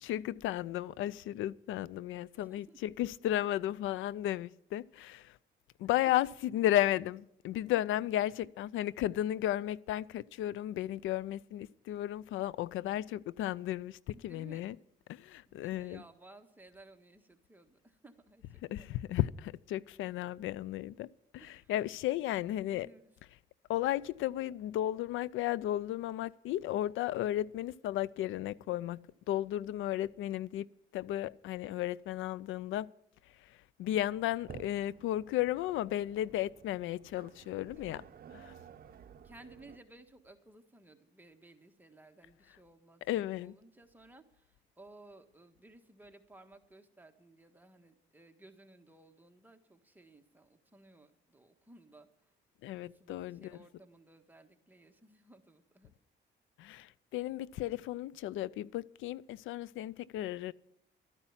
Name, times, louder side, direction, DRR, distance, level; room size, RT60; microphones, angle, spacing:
voice 1, 0.0-5.4 5.8-14.8 15.1-16.0 18.7-21.1 21.3-22.9 23.7-29.0 29.3-30.7 30.9-32.9 33.8-38.0 38.3-38.5 43.1-43.5 52.6-53.6 56.6-60.5, left 13 dB, 85° left, 0.4 m, -34 dB
voice 2, 2.3-2.9 6.0-6.1 11.6-11.8 14.1-14.7 15.4-19.0 21.4-21.7 22.3-23.1 37.8-38.0 39.2-52.3 52.8-55.9 60.2-60.5, right 2 dB, 10° right, 1.5 m, -58 dB
sound 1, 33.8-39.8, right 8 dB, 50° right, 0.7 m, -54 dB
13.0 x 9.8 x 7.3 m
cardioid pair, 90°, 20 cm